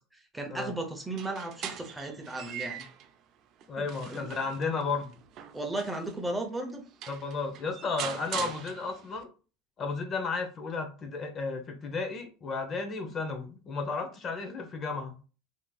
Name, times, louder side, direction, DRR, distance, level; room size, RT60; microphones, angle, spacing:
voice 1, 0.3-2.8 3.8-4.3 5.5-6.8, right 2 dB, 10° right, 3 dB, 0.6 m, -35 dB
sound 1, 1.0-3.1 3.6-6.2 6.7-6.8 7.0-9.2, right 9 dB, 50° right, 0.4 m, -41 dB
voice 2, 3.7-5.2 7.1-9.3 9.8-15.2, left 4 dB, 35° left, 5 dB, 0.6 m, -33 dB
2.9 x 2.6 x 2.2 m, 0.35 s
supercardioid pair, 115°, 0 cm